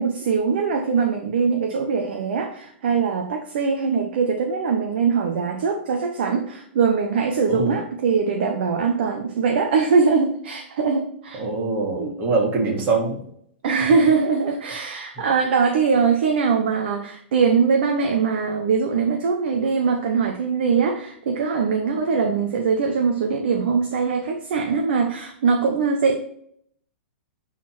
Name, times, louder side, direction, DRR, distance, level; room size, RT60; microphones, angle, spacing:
voice 1, 0.0-11.4 11.9-12.1 13.6-26.2, right 5 dB, 60° right, 4 dB, 1.0 m, -22 dB
voice 2, 11.4-13.2, right 3 dB, 30° right, -1 dB, 2.9 m, -23 dB
9.3 x 4.2 x 4.3 m, 0.66 s
figure-of-eight pair, 110°, 6 cm